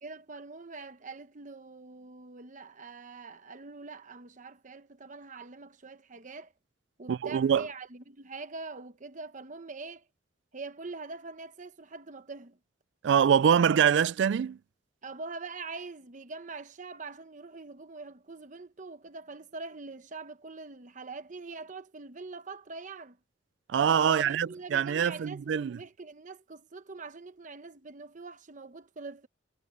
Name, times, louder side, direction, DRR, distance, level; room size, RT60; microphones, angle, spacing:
voice 1, 0.0-6.5 7.0-10.1 10.5-12.6 15.0-23.2 24.0-29.3, right 3 dB, 45° right, 1.0 m, -43 dB
voice 2, 7.1-7.7 13.0-14.6 23.7-25.8, right 8 dB, 70° right, 0.3 m, -24 dB
head